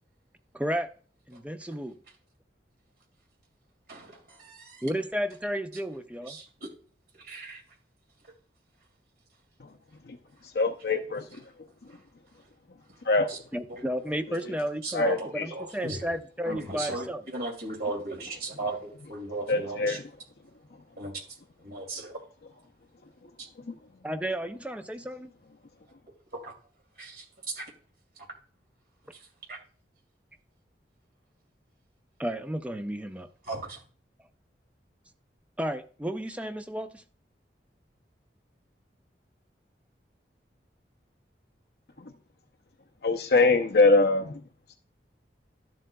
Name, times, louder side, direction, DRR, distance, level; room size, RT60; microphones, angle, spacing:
voice 1, 0.5-0.9 1.3-2.0 4.8-6.4 13.5-17.2 24.0-25.3 32.2-33.3 35.6-37.0, equal, 5° right, 8 dB, 0.5 m, -32 dB
voice 2, 3.9-4.8 6.3-6.7 7.2-7.6 13.3-13.4 13.7-13.8 14.4-14.5 14.8-16.1 16.5-20.0 21.0-21.2 21.6-22.2 26.3-26.5 27.0-27.6 29.5-29.6 33.5-33.8, right 2 dB, 55° right, 1 dB, 2.5 m, -37 dB
voice 3, 10.5-11.4 13.0-13.4 14.9-15.5 19.5-20.0 23.7-23.8 42.0-42.1 43.0-44.4, left 3 dB, 60° left, 6 dB, 0.6 m, -23 dB
12.0 x 7.5 x 2.3 m, 0.41 s
head